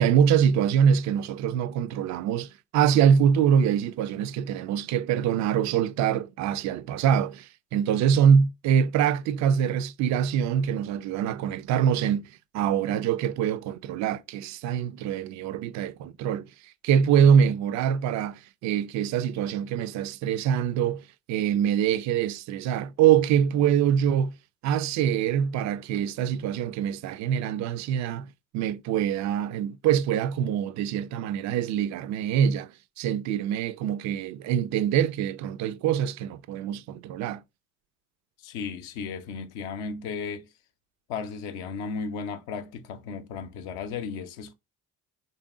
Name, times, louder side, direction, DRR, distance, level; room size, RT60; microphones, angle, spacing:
voice 1, 0.0-24.4 24.6-37.4, right 8 dB, 45° right, 0.4 m, -24 dB
voice 2, 38.4-40.4 41.1-44.5, left 5 dB, 60° left, 0.7 m, -35 dB
3.4 x 2.8 x 3.6 m
hypercardioid pair, 50°, 43 cm